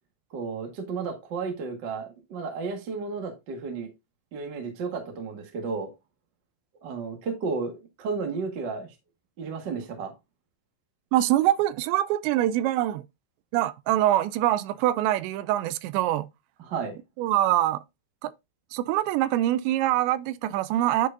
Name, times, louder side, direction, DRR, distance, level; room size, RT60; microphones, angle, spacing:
voice 1, 0.3-3.9 4.3-5.9 6.8-8.9 9.4-10.1 16.6-17.0, right 4 dB, 65° right, 1.0 m, -33 dB
voice 2, 11.1-13.0 13.5-16.3 17.2-17.8 18.2-18.3 18.7-21.1, right 14 dB, 85° right, 2.8 m, -24 dB
10.5 x 4.8 x 2.6 m
omnidirectional pair, 5.0 m